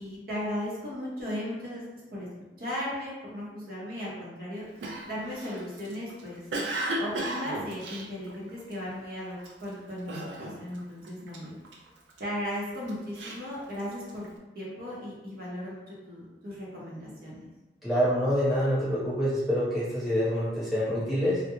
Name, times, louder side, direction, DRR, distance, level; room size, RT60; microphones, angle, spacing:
voice 1, 0.0-1.8 2.1-2.3 2.6-6.4 6.9-11.5 12.2-14.3 14.5-17.5, equal, 55° right, -6 dB, 0.8 m, -36 dB
Cough, 4.8-8.9 9.4-9.7 10.1-10.8 11.0-12.2 12.7-14.3, right 1 dB, 85° right, 0.4 m, -35 dB
voice 2, 17.8-21.4, equal, ahead, -11 dB, 0.9 m, -26 dB
2.3 x 2.1 x 2.9 m, 1.1 s
head